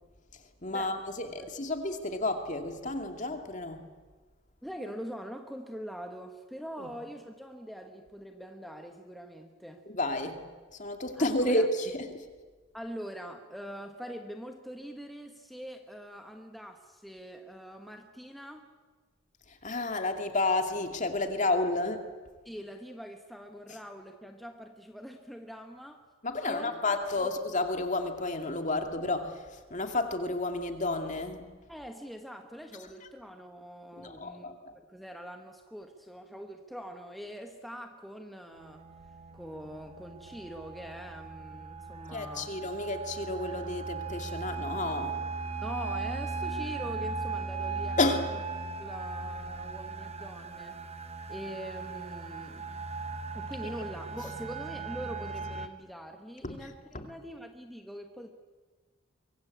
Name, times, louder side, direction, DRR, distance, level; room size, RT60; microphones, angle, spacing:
voice 1, 0.3-3.9 6.8-6.9 9.9-10.4 10.7-12.3 19.5-22.0 26.2-31.5 34.0-34.7 42.1-45.2 48.0-48.3 53.6-53.7 56.4-56.7 56.9-57.1, left 2 dB, 35° left, 6 dB, 2.4 m, -31 dB
voice 2, 4.6-9.8 11.2-11.7 12.7-18.7 22.4-26.0 26.4-26.8 27.2-27.3 31.7-38.8 39.3-42.5 45.6-48.0 48.8-50.8 51.3-52.7 53.3-58.3, equal, ahead, 4 dB, 1.4 m, -43 dB
sound 1, 38.5-55.7, right 4 dB, 30° right, 1.1 m, -38 dB
24.5 x 23.5 x 8.5 m, 1.4 s
head